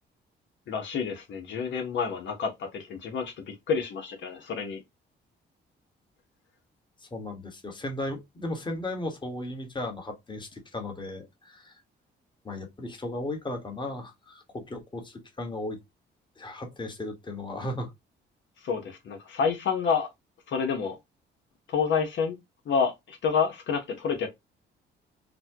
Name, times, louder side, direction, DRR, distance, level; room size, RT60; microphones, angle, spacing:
voice 1, 0.7-4.8 18.6-20.1 20.5-21.0 21.7-22.4 22.7-24.3, left 6 dB, 70° left, 1.0 m, -28 dB
voice 2, 7.1-11.7 12.4-15.8 16.4-17.9, left 1 dB, 25° left, 1.4 m, -36 dB
4.1 x 2.2 x 2.8 m
cardioid pair, 90°, 20 cm